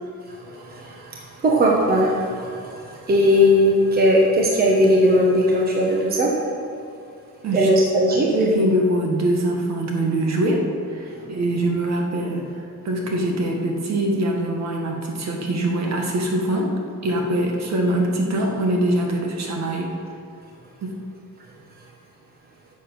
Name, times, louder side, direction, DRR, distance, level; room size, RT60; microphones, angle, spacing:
voice 1, 0.3-6.3 7.5-8.3, equal, 25° right, -2 dB, 1.3 m, -19 dB
voice 2, 8.3-10.6 10.9-12.5 12.8-16.7 17.0-19.9 20.8-20.9, right 1 dB, 50° right, 1 dB, 1.8 m, -23 dB
10.5 x 7.1 x 6.2 m, 2.4 s
cardioid pair, 150°, 35 cm